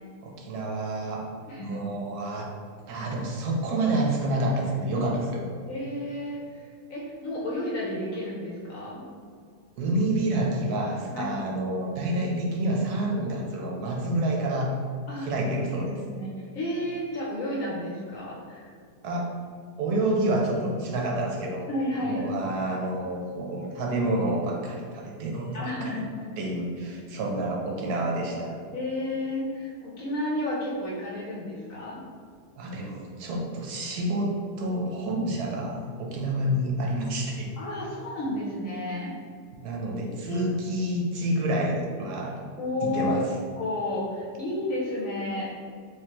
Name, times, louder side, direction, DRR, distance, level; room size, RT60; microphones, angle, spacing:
voice 1, 0.2-1.3 1.6-2.5 2.9-5.5 9.8-14.7 15.2-16.0 19.0-19.3 19.8-21.7 22.0-26.0 26.4-28.6 32.6-34.3 34.6-37.5 39.6-42.4 42.8-43.2, right 1 dB, 70° right, -1 dB, 1.0 m, -28 dB
voice 2, 1.5-2.0 5.7-9.0 11.1-11.3 15.1-15.3 15.7-18.7 21.7-22.3 25.5-26.3 28.7-32.0 37.6-39.1 40.2-40.5 42.6-43.3 43.6-45.5, left 1 dB, 65° left, -4 dB, 0.9 m, -32 dB
3.5 x 3.1 x 2.8 m, 2.2 s
omnidirectional pair, 1.8 m